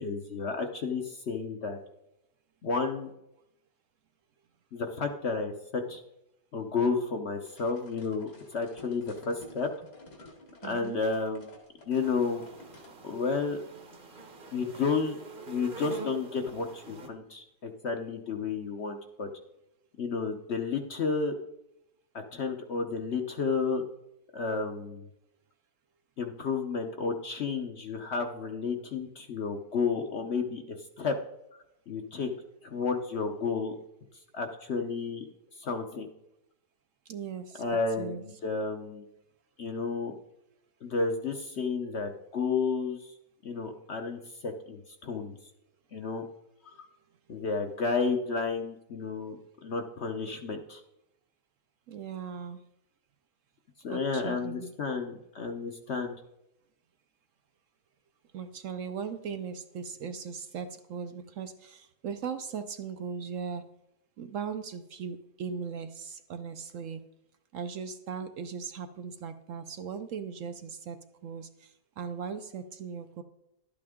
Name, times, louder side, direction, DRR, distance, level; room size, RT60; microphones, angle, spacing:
voice 1, 0.0-1.8 2.6-3.1 4.7-6.0 6.5-9.7 10.6-11.4 11.9-12.4 13.0-13.6 14.5-15.2 15.5-19.3 20.0-21.4 22.1-23.8 24.3-25.1 26.2-31.2 31.9-32.3 32.6-33.7 34.3-35.2 35.6-36.1 37.6-39.1 39.6-40.1 40.8-43.1 43.4-45.4 45.9-46.2 46.7-46.8 47.3-50.8 53.8-56.2, left 4 dB, 55° left, 4 dB, 0.8 m, -31 dB
sound 1, 7.5-12.9, left 2 dB, 85° left, 2.8 m, -52 dB
voice 2, 10.6-11.0 37.1-37.7 38.0-38.2 51.9-52.6 53.9-54.7 58.3-63.6 64.2-67.0 67.5-71.0 71.2-73.2, right 6 dB, 65° right, 9 dB, 0.8 m, -38 dB
sound 2, 11.9-17.1, right 3 dB, 35° right, 0.9 m, -46 dB
12.0 x 8.5 x 3.6 m, 0.84 s
omnidirectional pair, 1.8 m